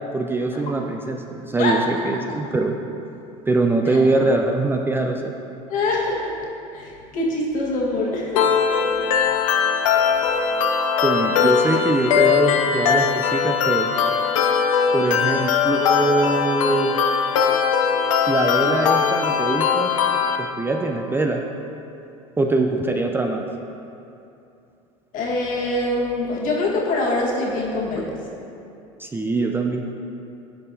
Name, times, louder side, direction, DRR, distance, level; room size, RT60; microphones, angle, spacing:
voice 1, 0.1-2.8 3.5-5.3 11.0-13.9 14.9-16.9 18.3-19.9 20.4-21.4 22.4-23.4 27.9-28.0 29.0-29.9, right 2 dB, 15° right, 3 dB, 0.4 m, -22 dB
voice 2, 5.7-6.3 6.7-8.5 9.9-10.0 25.1-28.1, left 2 dB, 55° left, -3 dB, 1.5 m, -24 dB
sound 1, 8.4-20.4, left 7 dB, 90° left, 0.5 m, -20 dB
10.0 x 5.4 x 2.7 m, 2.7 s
supercardioid pair, 90°, 16 cm